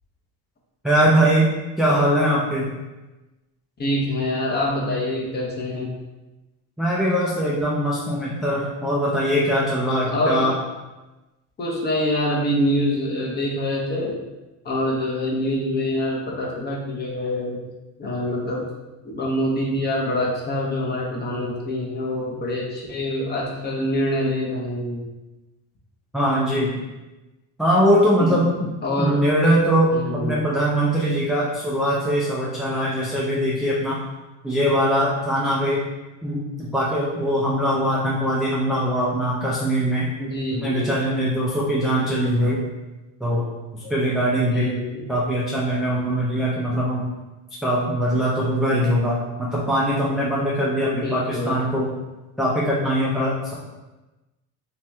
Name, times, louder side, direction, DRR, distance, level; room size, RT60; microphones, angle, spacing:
voice 1, 0.8-1.5 1.8-2.8 6.8-10.5 26.1-26.8 27.6-28.7 29.0-34.0 34.4-35.8 36.2-40.1 40.5-42.6 43.2-43.4 43.7-44.8 45.1-47.1 47.6-51.9 52.4-53.5, equal, ahead, -7 dB, 0.3 m, -21 dB
voice 2, 3.8-5.9 10.0-10.5 11.6-14.1 14.6-17.6 18.0-18.7 19.0-25.0 28.2-28.4 28.8-29.2 29.9-30.4 40.2-41.2 41.7-42.4 43.8-43.9 44.4-45.1 50.9-51.6, left 1 dB, 25° left, -3 dB, 0.8 m, -25 dB
3.1 x 2.9 x 3.4 m, 1.1 s
cardioid pair, 135°, 38 cm